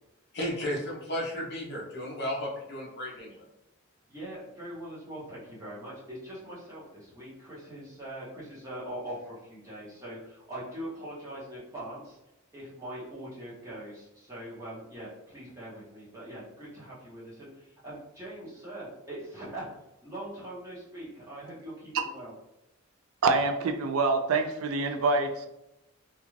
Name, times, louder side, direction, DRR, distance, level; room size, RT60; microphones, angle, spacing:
voice 1, 0.3-3.4, equal, 50° left, -3 dB, 0.6 m, -34 dB
voice 2, 4.1-12.2 12.5-19.7 20.0-22.3, right 1 dB, 15° right, -9 dB, 0.7 m, -42 dB
voice 3, 23.2-25.5, right 3 dB, 70° right, 6 dB, 0.3 m, -26 dB
2.4 x 2.2 x 3.0 m, 0.89 s
head